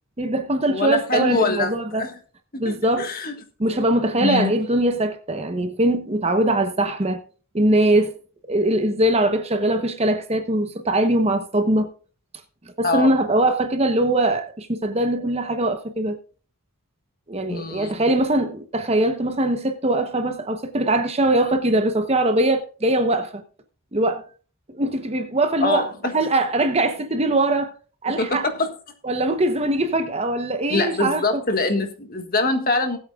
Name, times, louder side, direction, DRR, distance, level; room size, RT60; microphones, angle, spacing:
voice 1, 0.2-2.0 2.6-3.1 3.6-7.2 7.5-8.2 8.5-11.9 12.8-16.2 17.3-23.4 23.9-24.2 24.7-25.9 26.1-27.7 28.0-28.5 29.0-31.4, right 1 dB, 30° right, 0.9 m, -21 dB
voice 2, 0.7-2.2 2.7-3.3 4.2-4.5 12.8-13.1 17.5-18.0 25.6-26.1 28.2-28.7 30.7-33.0, left 3 dB, 40° left, 1.6 m, -24 dB
19.0 x 8.5 x 2.4 m
head